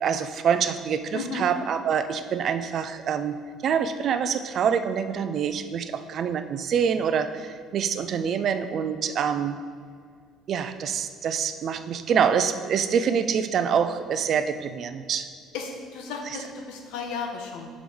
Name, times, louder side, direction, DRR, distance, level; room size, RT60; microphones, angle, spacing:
voice 1, 0.0-9.6 10.5-15.3, right 7 dB, 40° right, 10 dB, 0.4 m, -26 dB
voice 2, 1.1-1.5 15.5-17.7, left 5 dB, 85° left, 2 dB, 1.0 m, -34 dB
5.3 x 4.9 x 6.0 m, 2.1 s
cardioid pair, 160°, 0 cm